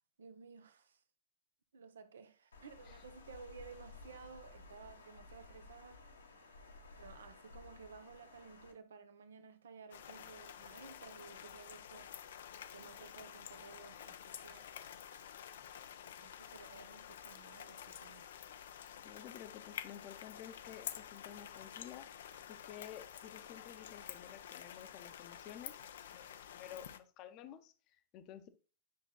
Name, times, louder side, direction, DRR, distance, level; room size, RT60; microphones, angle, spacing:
voice 1, 0.2-1.0 1.7-6.1 7.0-12.1 12.7-14.6 16.2-18.3 18.7-18.9, right 5 dB, 70° right, 0.8 m, -55 dB
Water, 2.5-8.7, left 3 dB, 80° left, 1.3 m, -56 dB
sound 1, 9.9-27.0, left 9 dB, 60° left, 0.5 m, -50 dB
voice 2, 19.0-22.0 22.5-28.5, left 10 dB, 40° left, 0.8 m, -52 dB
10.5 x 6.1 x 2.3 m
figure-of-eight pair, 90°, 0 cm